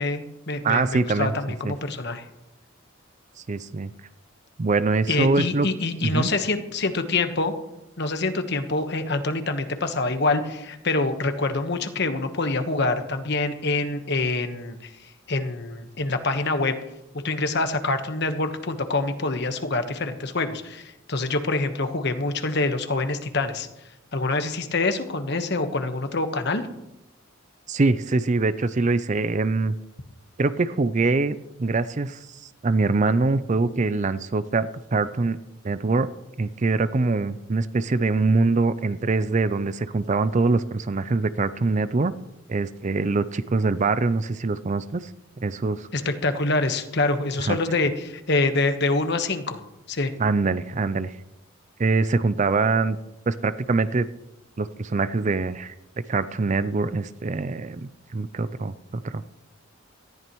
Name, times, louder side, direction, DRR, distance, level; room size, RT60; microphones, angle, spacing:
voice 1, 0.0-2.2 5.1-7.5 8.0-14.9 15.3-16.8 17.2-23.7 24.1-26.6 45.9-49.6 49.9-50.1, left 3 dB, 55° left, 7 dB, 1.2 m, -25 dB
voice 2, 0.6-1.3 1.6-1.7 3.5-3.9 4.6-5.7 6.0-6.3 27.7-29.7 30.4-32.2 32.6-35.4 35.6-36.1 36.4-42.1 42.5-45.1 45.4-45.9 47.4-47.6 50.2-51.1 51.8-53.0 53.3-54.1 54.6-55.7 56.1-59.2, right 3 dB, 35° right, 14 dB, 0.5 m, -23 dB
18.5 x 14.0 x 3.1 m, 0.92 s
head